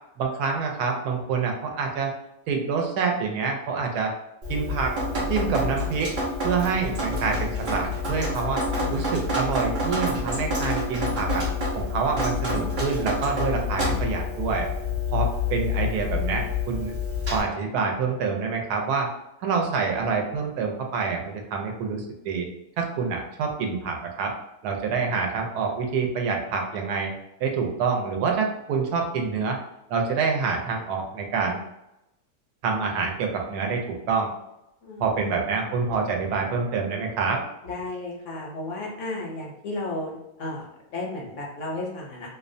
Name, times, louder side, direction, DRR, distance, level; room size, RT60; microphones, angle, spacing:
voice 1, 0.2-2.1 2.5-4.1 4.5-4.9 5.3-6.1 6.4-8.6 8.9-11.4 11.7-14.7 15.1-16.9 17.3-19.1 19.4-22.5 22.8-24.3 24.6-27.1 27.4-29.6 29.9-31.6 32.6-34.3 35.0-37.4, right 5 dB, 80° right, 2 dB, 1.1 m, -26 dB
Drip, 4.4-17.4, left 3 dB, 50° right, 0.6 m, -28 dB
voice 2, 34.8-35.4 37.6-42.3, left 2 dB, 65° left, -2 dB, 0.8 m, -34 dB
2.7 x 2.1 x 2.5 m, 0.87 s
omnidirectional pair, 1.6 m